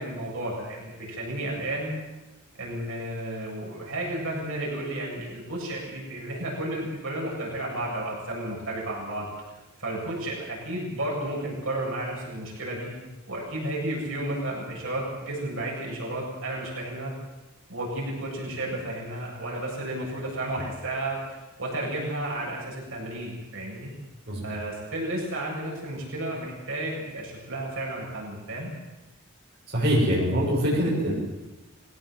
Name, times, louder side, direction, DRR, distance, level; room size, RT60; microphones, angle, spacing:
voice 1, 0.0-1.9 2.6-9.3 9.8-12.9 13.3-17.1 17.7-23.9 24.4-28.7, right 1 dB, 65° right, -3 dB, 7.6 m, -32 dB
voice 2, 29.7-31.1, equal, 45° right, -6 dB, 7.1 m, -23 dB
22.0 x 17.5 x 7.9 m, 1.1 s
head